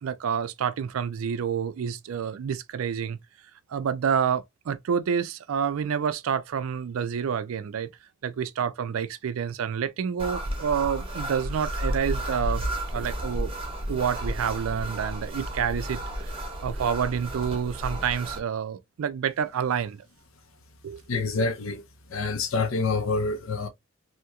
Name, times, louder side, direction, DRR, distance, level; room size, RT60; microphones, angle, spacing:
voice 1, 0.0-3.2 3.7-7.9 8.2-12.6 12.9-13.5 13.9-16.3 16.6-20.0 20.8-21.2, right 7 dB, 75° right, 0.4 m, -28 dB
sound 1, 10.2-18.4, right 1 dB, 25° right, 0.7 m, -32 dB
voice 2, 21.1-21.8 22.1-23.7, left 3 dB, 70° left, 0.6 m, -27 dB
2.8 x 2.8 x 2.3 m
head